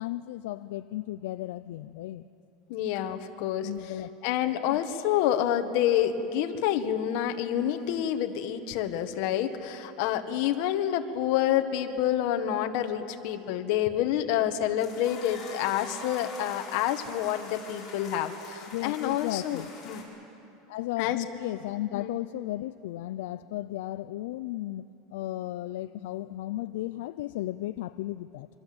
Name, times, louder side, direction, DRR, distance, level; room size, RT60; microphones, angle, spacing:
voice 1, 0.0-2.3 3.6-4.1 4.5-4.8 18.7-19.7 20.7-24.8 25.1-28.5, left 15 dB, 80° left, 12 dB, 0.5 m, -35 dB
voice 2, 2.7-3.7 4.2-20.0 21.0-21.2 21.9-22.1, left 11 dB, 55° left, 7 dB, 1.6 m, -28 dB
sound 1, 14.8-20.0, left 4 dB, 25° left, 5.7 m, -44 dB
26.5 x 24.0 x 7.9 m, 3.0 s
supercardioid pair, 160°, 0 cm